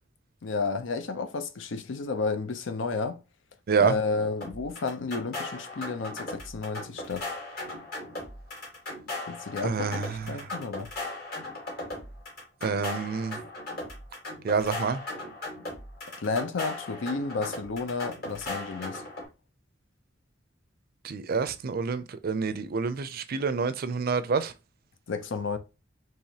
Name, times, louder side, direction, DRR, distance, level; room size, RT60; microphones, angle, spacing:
voice 1, 0.4-3.2 3.8-7.3 9.3-10.9 16.2-19.0 25.1-25.6, left 4 dB, 90° left, 0.6 m, -32 dB
sound 1, 4.4-19.3, left 2 dB, 55° left, 2.1 m, -38 dB
voice 2, 9.6-10.5 12.6-13.4 14.4-15.0 21.0-24.5, right 5 dB, 55° right, 0.4 m, -28 dB
4.7 x 3.0 x 2.8 m
head